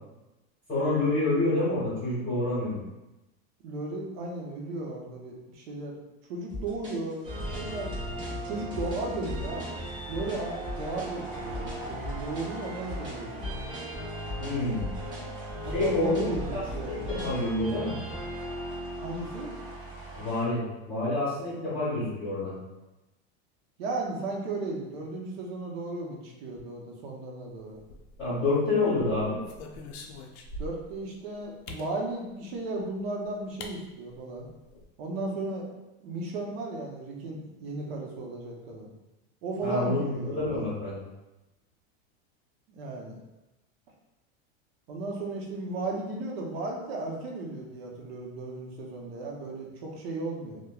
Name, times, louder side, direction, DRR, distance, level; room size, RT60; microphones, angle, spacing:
voice 1, 0.7-2.7 14.4-14.9 15.7-16.2 16.5-18.0 20.2-22.5 28.2-29.4 39.6-41.0, left 2 dB, 10° left, -13 dB, 1.0 m, -28 dB
voice 2, 3.6-5.9 6.3-8.0 8.4-9.7 10.1-13.5 15.6-17.2 19.0-19.5 23.8-27.8 30.6-34.5 35.0-35.7 36.0-38.9 39.4-40.7 42.7-43.2 44.9-50.6, right 2 dB, 65° right, -1 dB, 0.7 m, -35 dB
sound 1, 6.5-17.4, left 1 dB, 15° right, 0.4 m, -39 dB
sound 2, 7.2-20.4, right 1 dB, 35° right, 0.8 m, -38 dB
sound 3, 27.8-28.5 29.0-31.0 31.7-31.9 33.0-33.1 33.6-33.7 34.1-34.2 34.4-34.9, left 1 dB, 75° left, 0.5 m, -43 dB
3.0 x 2.1 x 2.3 m, 1.0 s
supercardioid pair, 170°, 32 cm